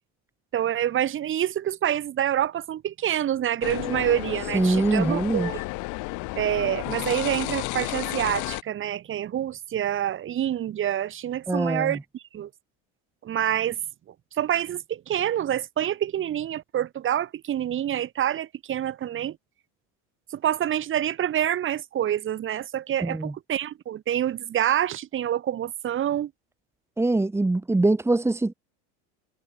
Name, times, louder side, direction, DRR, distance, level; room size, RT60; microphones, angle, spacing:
voice 1, 0.5-5.6 6.3-12.5 13.2-13.8 14.4-19.4 20.3-26.3, right 11 dB, 35° right, 4.8 m, -27 dB
sound 1, 3.6-8.6, left 25 dB, 60° left, 5.9 m, -32 dB
voice 2, 4.5-5.5 11.5-12.0 23.0-23.3 27.0-28.5, right 2 dB, 10° right, 2.2 m, -23 dB
supercardioid pair, 125°, 33 cm